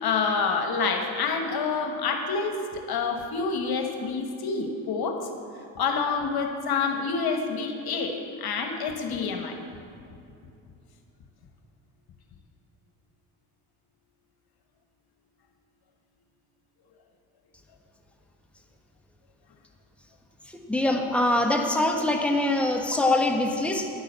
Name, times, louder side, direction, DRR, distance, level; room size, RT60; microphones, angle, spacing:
voice 1, 0.0-2.6 2.9-5.2 5.8-9.6, left 5 dB, 60° left, 4 dB, 1.4 m, -27 dB
voice 2, 20.5-23.9, left 1 dB, 5° left, 2 dB, 1.4 m, -24 dB
10.5 x 6.3 x 8.0 m, 2.6 s
supercardioid pair, 55°, 42 cm